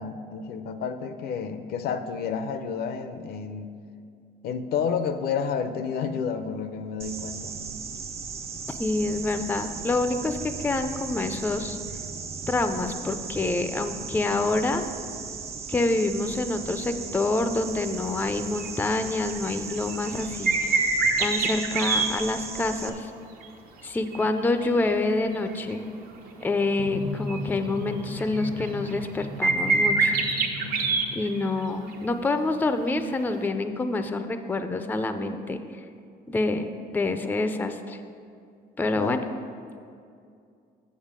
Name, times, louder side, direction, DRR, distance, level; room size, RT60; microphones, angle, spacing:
voice 1, 0.0-3.7 4.4-7.6 39.0-39.3, left 6 dB, 65° left, 10 dB, 0.5 m, -30 dB
sound 1, 7.0-22.9, right 5 dB, 35° right, 0.6 m, -37 dB
voice 2, 8.7-11.8 12.5-14.9 15.7-20.8 21.2-23.1 23.8-25.8 26.4-30.2 31.1-35.6 36.3-38.0 38.8-39.2, left 2 dB, 10° left, 8 dB, 0.4 m, -27 dB
sound 2, 18.6-18.9 19.3-22.1 24.1-25.3 25.7-25.8 27.3-27.4 27.9-29.1 29.4-31.6 31.9-32.0 33.5-33.6, right 4 dB, 60° right, 0.9 m, -25 dB
Drum, 26.8-31.9, left 3 dB, 90° left, 1.2 m, -37 dB
7.4 x 6.7 x 5.0 m, 2.4 s
cardioid pair, 110°, 17 cm